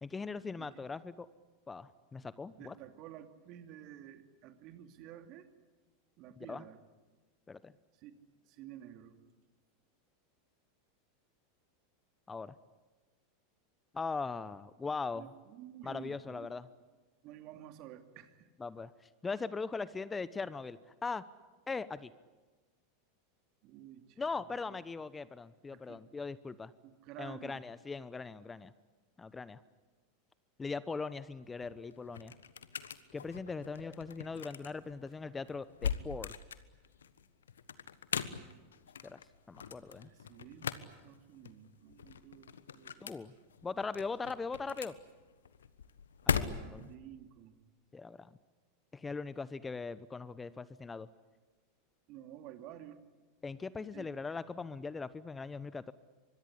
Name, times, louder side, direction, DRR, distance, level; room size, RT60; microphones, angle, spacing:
voice 1, 0.0-1.3 1.7-2.8 6.4-6.6 7.5-7.7 12.3-12.5 13.9-15.3 15.8-16.7 18.6-18.9 19.2-21.2 21.7-22.1 24.2-26.7 27.2-28.7 29.2-29.6 30.6-32.3 33.1-36.3 39.0-39.2 39.5-40.1 43.0-43.3 43.6-45.0 46.3-46.9 47.9-48.3 48.9-51.1 53.4-55.9, left 4 dB, 15° left, 17 dB, 0.9 m, -40 dB
voice 2, 2.6-5.5 6.2-6.8 7.9-8.2 8.5-9.2 15.1-16.5 17.2-18.5 23.6-24.2 24.5-24.8 25.7-26.0 26.8-27.6 40.0-43.1 46.6-47.6 52.1-53.0 53.9-54.1, right 11 dB, 50° right, 8 dB, 2.6 m, -51 dB
sound 1, 31.4-47.0, left 7 dB, 80° left, 1.3 m, -41 dB
25.0 x 22.0 x 10.0 m, 1.3 s
hypercardioid pair, 90°, 0 cm